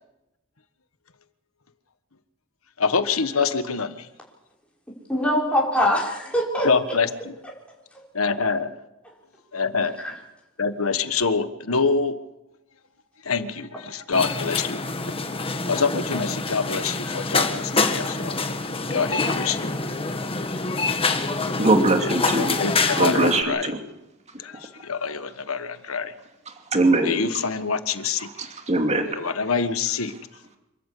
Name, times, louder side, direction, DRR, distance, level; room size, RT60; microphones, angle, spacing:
voice 1, 2.8-4.1 6.6-7.1 8.1-8.7 9.5-10.0 10.6-12.2 13.2-14.8 15.7-18.4 18.9-19.7 20.7-20.8 22.4-23.7 24.4-26.1 27.0-28.3 29.1-30.1, left 5 dB, 80° left, 11 dB, 1.4 m, -25 dB
voice 2, 5.1-6.7 9.0-9.1 9.8-10.1, equal, 5° left, -4 dB, 6.0 m, -23 dB
sound 1, 14.1-23.4, left 3 dB, 25° left, 1.7 m, -26 dB
voice 3, 21.6-22.6 23.0-23.8 26.5-27.2 28.4-29.1, right 2 dB, 35° right, 4 dB, 2.7 m, -21 dB
27.0 x 13.5 x 8.5 m, 0.96 s
head